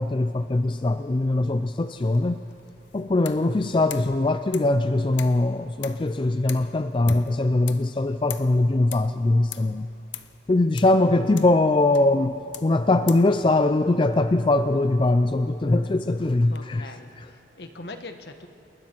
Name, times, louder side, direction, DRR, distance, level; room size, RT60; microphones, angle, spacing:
voice 1, 0.0-2.4 2.9-9.9 10.5-17.3, left 2 dB, 30° left, 10 dB, 0.4 m, -22 dB
sound 1, 2.0-16.6, left 12 dB, 85° left, 0.8 m, -45 dB
voice 2, 16.5-18.5, left 2 dB, 60° left, 7 dB, 1.3 m, -41 dB
29.5 x 20.5 x 4.5 m, 3.0 s
head